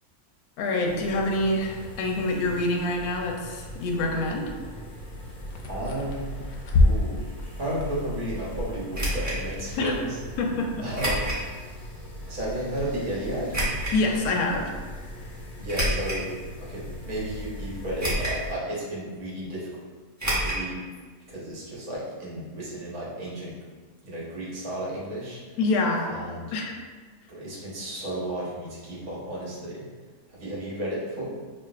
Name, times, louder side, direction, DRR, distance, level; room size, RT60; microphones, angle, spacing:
voice 1, 0.6-4.5 9.8-10.0 10.4-10.9 13.9-14.7 25.6-26.1 26.5-26.8, left 2 dB, 85° left, 1 dB, 1.1 m, -26 dB
sound 1, 0.8-18.5, equal, 25° left, 0.8 m, -40 dB
sound 2, 5.1-11.9 12.2-13.2, left 2 dB, 65° left, 0.7 m, -30 dB
voice 2, 5.7-6.4 6.8-7.2 7.6-10.2 10.8-11.4 12.3-13.6 15.6-19.8 20.3-20.8 21.3-23.6 24.0-25.4 26.1-26.5 27.3-29.9 30.3-31.4, right 1 dB, 75° right, -6 dB, 1.6 m, -33 dB
sound 3, 8.9-9.4 10.9-11.4 12.0-12.1 13.5-14.0 15.7-16.3 16.9-17.0 18.0-18.5 18.7-18.8 20.2-20.6 20.9-21.0 21.3-21.4, right 1 dB, 15° right, 0.8 m, -27 dB
6.0 x 2.4 x 2.4 m, 1.5 s
omnidirectional pair, 1.5 m